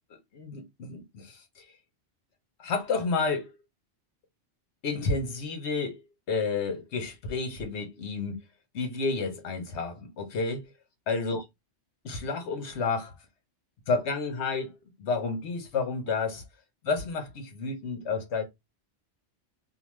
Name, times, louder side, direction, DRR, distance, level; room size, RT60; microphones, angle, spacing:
voice 1, 0.1-1.7 2.6-3.5 4.8-6.0 6.3-8.4 8.7-10.7 11.1-11.4 12.0-13.2 13.9-14.7 15.0-16.4 16.8-18.4, left 4 dB, 70° left, 1.1 m, -30 dB
2.8 x 2.2 x 3.0 m
omnidirectional pair, 1.2 m